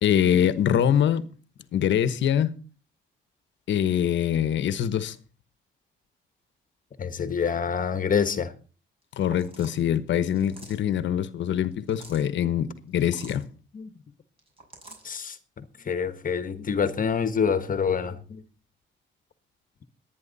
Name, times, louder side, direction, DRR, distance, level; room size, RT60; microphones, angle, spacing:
voice 1, 0.0-1.3 1.7-2.5 3.7-5.1 9.2-13.4, left 9 dB, 70° left, 1.1 m, -24 dB
voice 2, 7.0-8.5 13.7-13.9 15.0-18.4, left 6 dB, 45° left, 1.4 m, -27 dB
sound 1, 9.3-9.8 10.3-10.9 11.7-12.3 13.0-13.4 14.4-15.1, right 2 dB, 30° right, 6.3 m, -47 dB
22.0 x 9.5 x 4.1 m
cardioid pair, 90°, 20 cm